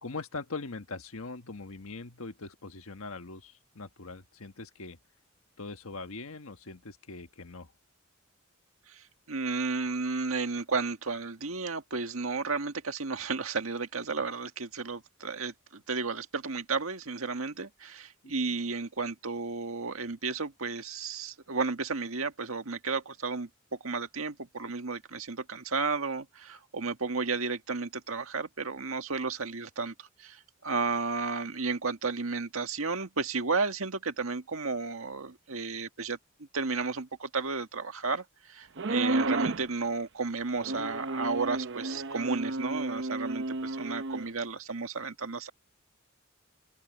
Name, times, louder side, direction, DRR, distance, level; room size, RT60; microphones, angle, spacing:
voice 1, 0.0-5.0 5.6-7.7 18.2-18.3, left 3 dB, 85° left, 1.4 m, -41 dB
voice 2, 8.9-36.2 36.5-45.5, right 4 dB, 80° right, 1.7 m, -33 dB
sound 1, 38.8-39.7 40.6-44.3, right 2 dB, 60° right, 0.8 m, -32 dB
open air
head